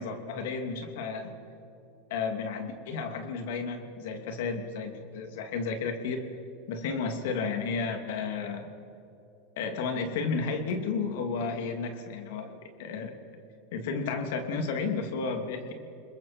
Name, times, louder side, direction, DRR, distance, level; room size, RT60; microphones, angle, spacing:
voice 1, 0.0-1.3 2.1-6.2 6.7-8.7 9.6-13.1 13.7-15.7, left 4 dB, 75° left, 5 dB, 3.0 m, -32 dB
29.5 x 21.0 x 4.6 m, 2.9 s
supercardioid pair, 115°, 0 cm